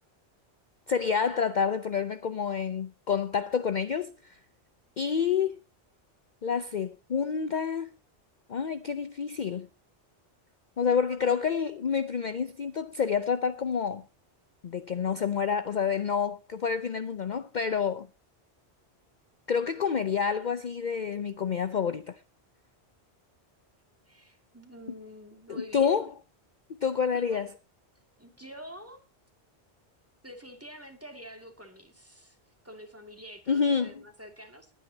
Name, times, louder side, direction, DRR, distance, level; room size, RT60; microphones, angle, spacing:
voice 1, 0.9-4.4 5.0-5.5 6.4-7.9 8.5-9.7 10.8-14.0 14.6-18.1 19.5-22.2 25.5-26.1 26.8-27.5 33.5-34.0, left 6 dB, 50° left, 0.8 m, -28 dB
voice 2, 24.1-26.0 27.1-27.5 28.2-29.0 30.2-32.4 32.6-34.7, equal, 10° right, 2.3 m, -47 dB
20.0 x 9.4 x 2.8 m
omnidirectional pair, 1.1 m